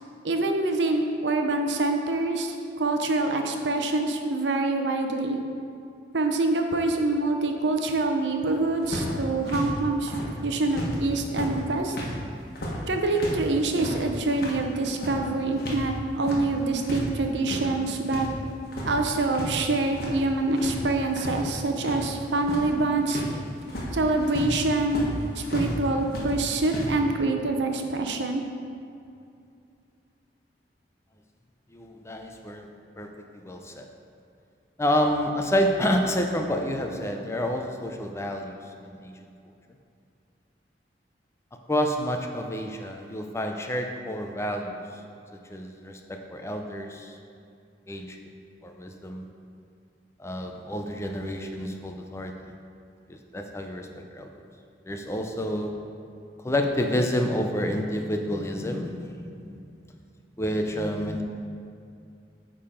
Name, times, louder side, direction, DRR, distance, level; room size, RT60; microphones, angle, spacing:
voice 1, 0.2-5.4 6.1-10.1 10.4-11.9 12.9-18.3 18.9-23.2 23.9-25.1 25.3-28.4, right 2 dB, 90° right, 4 dB, 0.7 m, -25 dB
sound 1, 8.8-11.0 11.2-15.8 16.1-17.1 17.3-18.3 18.6-19.5 19.8-20.3 20.6-25.7 26.1-26.9, equal, 60° left, 1.3 m, -33 dB
voice 2, 31.7-32.7 33.0-33.9 34.8-38.6 39.0-39.2 41.7-44.8 45.5-47.2 47.9-48.2 48.6-49.3 50.2-52.5 53.1-54.3 54.8-55.7 56.4-59.6 60.4-61.2, equal, 15° left, 3 dB, 0.5 m, -29 dB
8.7 x 3.8 x 5.0 m, 2.5 s
head